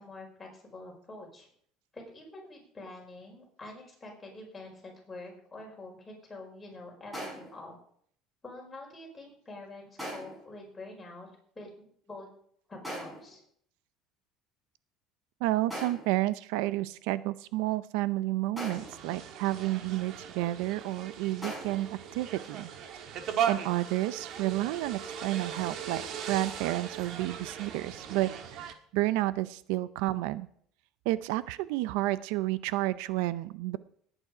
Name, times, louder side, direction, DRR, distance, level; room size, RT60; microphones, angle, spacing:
voice 1, 0.0-1.5 1.9-7.7 8.4-11.3 11.5-11.7 12.1-12.3 12.7-13.4, left 2 dB, 10° left, -2 dB, 5.1 m, -46 dB
sound 1, 7.1-7.6 10.0-10.5 12.8-13.4 15.7-16.2 18.6-19.1 21.4-21.9, equal, 10° right, 6.6 m, -40 dB
voice 2, 15.4-22.7 23.5-26.0 26.3-30.5 31.1-33.8, right 16 dB, 85° right, 16 dB, 0.6 m, -31 dB
sound 2, 18.7-28.7, right 8 dB, 50° right, 1.4 m, -38 dB
18.5 x 9.1 x 5.0 m, 0.63 s
cardioid pair, 155°, 0 cm